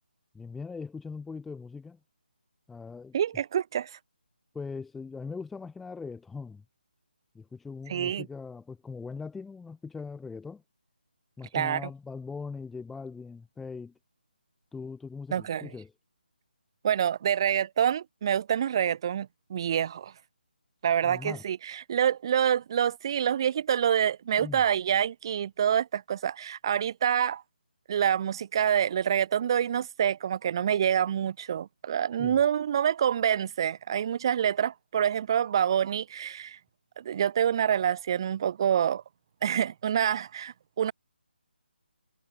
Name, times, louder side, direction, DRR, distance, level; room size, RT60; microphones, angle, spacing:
voice 1, 0.3-2.0 2.7-3.2 4.5-6.6 7.3-10.6 11.4-13.9 14.7-15.9 21.0-21.4 24.4-24.6 32.2-32.4, left 4 dB, 5° left, 1.3 m, -40 dB
voice 2, 3.1-3.9 7.9-8.3 11.5-11.9 15.3-15.7 16.8-20.1 20.8-27.4 27.9-36.6 37.0-39.0 39.4-40.9, right 9 dB, 25° right, 0.6 m, -27 dB
hypercardioid pair, 170°, 6 cm